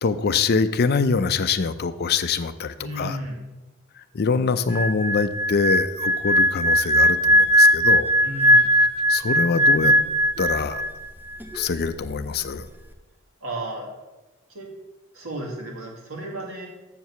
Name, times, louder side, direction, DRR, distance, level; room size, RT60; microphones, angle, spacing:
voice 1, 0.0-3.2 4.0-8.1 8.8-9.9 10.4-10.8 11.5-12.7, left 5 dB, 50° left, 11 dB, 0.5 m, -24 dB
voice 2, 2.8-3.4 8.2-8.7 13.4-13.9 14.5-14.7 15.1-16.7, right 1 dB, 85° right, -1 dB, 2.0 m, -33 dB
sound 1, 4.7-11.1 11.3-11.6, equal, 10° right, 0.6 m, -19 dB
7.5 x 4.6 x 6.8 m, 1.1 s
head